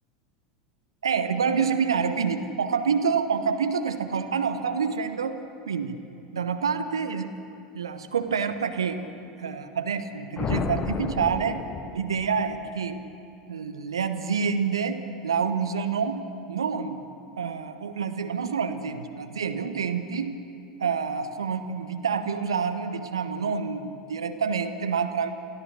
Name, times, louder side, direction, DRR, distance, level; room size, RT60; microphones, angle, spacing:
voice 1, 1.0-5.4 5.7-6.0 6.3-7.3 7.7-9.0 9.4-11.6 11.9-13.0 13.5-17.0 17.4-20.4 20.8-25.3, right 6 dB, 75° right, 9 dB, 1.0 m, -27 dB
sound 1, 10.4-12.6, left 5 dB, 30° left, 1.1 m, -31 dB
25.5 x 16.0 x 6.5 m, 2.5 s
figure-of-eight pair, 80°, 3 cm